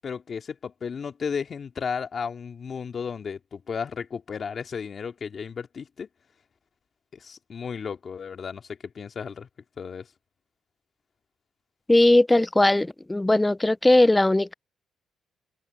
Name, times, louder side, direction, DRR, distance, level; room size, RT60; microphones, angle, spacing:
voice 1, 0.0-6.1 7.1-9.5 9.8-10.1, left 6 dB, 45° left, 2.5 m, -34 dB
voice 2, 11.9-14.5, left 1 dB, 10° left, 0.4 m, -19 dB
open air
cardioid pair, 90°, 0 cm